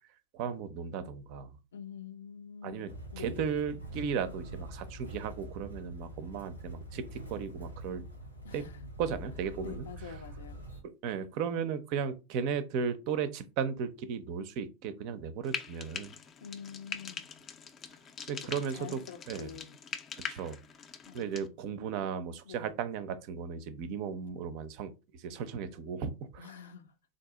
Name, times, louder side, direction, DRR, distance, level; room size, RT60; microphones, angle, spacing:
voice 1, 0.3-1.5 2.6-2.9 3.2-8.0 8.5-8.6 9.0-9.9 11.0-16.1 18.3-19.0 19.3-19.5 20.3-20.6 21.1-24.9 25.2-26.5, right 7 dB, 45° right, 0.5 m, -35 dB
voice 2, 1.7-3.5 8.4-8.9 9.6-10.6 16.4-17.2 18.4-19.8 21.1-21.6 22.5-22.7 26.4-26.9, left 7 dB, 65° left, 0.6 m, -47 dB
Motor vehicle (road), 2.9-10.8, right 1 dB, 90° left, 1.7 m, -45 dB
Frying (food), 15.4-21.5, left 6 dB, 25° left, 0.5 m, -43 dB
3.8 x 2.7 x 3.6 m
figure-of-eight pair, 90°, 0 cm